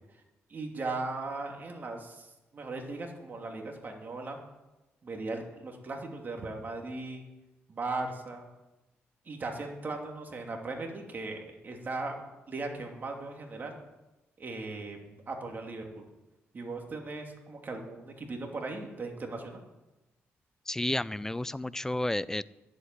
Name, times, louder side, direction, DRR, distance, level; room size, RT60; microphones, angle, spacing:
voice 1, 0.5-2.3 2.5-4.4 5.0-7.3 7.7-8.5 9.3-13.8 14.4-16.0 16.5-19.6, right 3 dB, 40° right, 2 dB, 2.7 m, -38 dB
voice 2, 20.7-22.4, left 1 dB, 10° left, 18 dB, 0.4 m, -31 dB
10.5 x 8.1 x 9.7 m, 1.0 s
cardioid pair, 90°, 5 cm